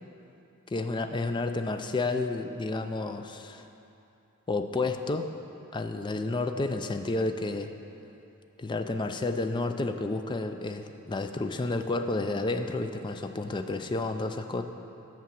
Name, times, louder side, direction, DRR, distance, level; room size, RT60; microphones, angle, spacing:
voice 1, 0.7-3.7 4.5-5.3 5.7-7.7 8.6-14.6, left 2 dB, 20° left, 7 dB, 0.4 m, -31 dB
8.5 x 5.8 x 7.4 m, 2.9 s
head